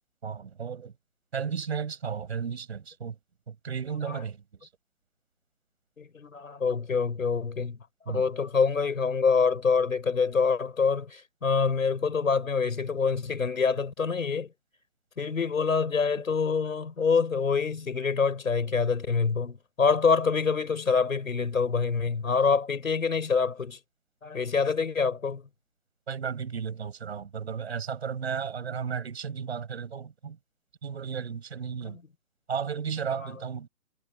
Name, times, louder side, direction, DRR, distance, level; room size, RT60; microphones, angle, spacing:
voice 1, 0.2-0.9 1.3-3.2 3.5-4.4 8.1-8.2 26.1-30.4 30.8-32.0 32.5-33.7, right 6 dB, 45° right, 7.2 m, -34 dB
voice 2, 3.9-4.2 6.0-7.8 8.1-14.5 15.2-23.8 24.2-25.4 31.8-32.0 33.1-33.4, left 5 dB, 60° left, 5.8 m, -26 dB
figure-of-eight pair, 165°, 46 cm